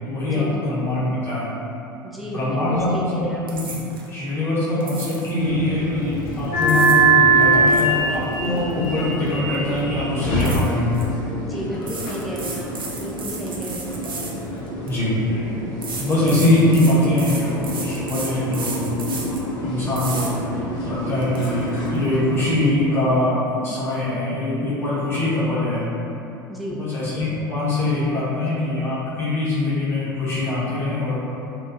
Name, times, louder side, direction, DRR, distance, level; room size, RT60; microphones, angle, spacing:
voice 1, 0.1-1.5 2.2-2.9 3.2-3.3 3.5-3.8 4.1-10.9 14.0-14.1 14.8-15.2 16.0-18.9 19.6-20.3 20.8-23.4 23.6-25.8 26.7-31.2, left 2 dB, 20° left, -11 dB, 1.0 m, -23 dB
voice 2, 2.0-3.4 11.4-12.7 13.0-13.9 26.5-26.8, equal, ahead, -5 dB, 0.4 m, -33 dB
sound 1, 3.5-4.1 4.8-5.4 6.4-7.1 7.4-9.3 9.5-9.8 10.4-11.1 11.8-15.0 15.8-19.4 19.9-20.3 20.8-20.9 21.2-21.5, right 3 dB, 75° right, 0.4 m, -34 dB
sound 2, 5.4-22.7, right 2 dB, 50° left, 0.6 m, -24 dB
2.6 x 2.2 x 2.6 m, 2.8 s
figure-of-eight pair, 75°, 12 cm